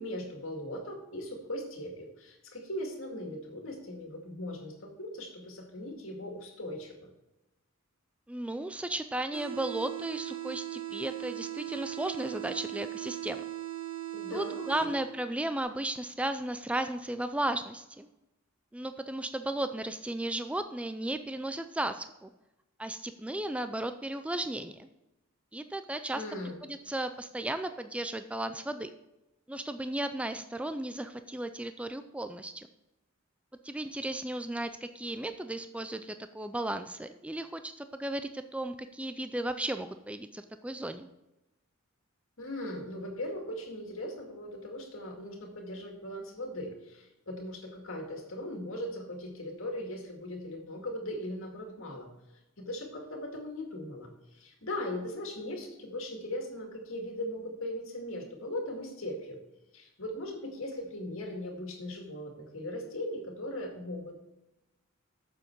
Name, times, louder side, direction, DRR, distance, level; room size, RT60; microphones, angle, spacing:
voice 1, 0.0-7.1 14.1-14.9 26.1-26.6 42.4-52.1 52.6-59.4 59.7-64.2, left 1 dB, 70° left, 2 dB, 2.1 m, -39 dB
voice 2, 8.3-13.4 14.3-18.1 18.7-22.3 22.8-24.9 25.5-26.2 26.7-28.9 29.5-32.7 33.6-41.1, right 1 dB, 5° right, 9 dB, 0.3 m, -35 dB
sound 1, 9.3-15.3, right 14 dB, 75° right, 1.4 m, -39 dB
8.8 x 7.0 x 4.6 m, 0.95 s
head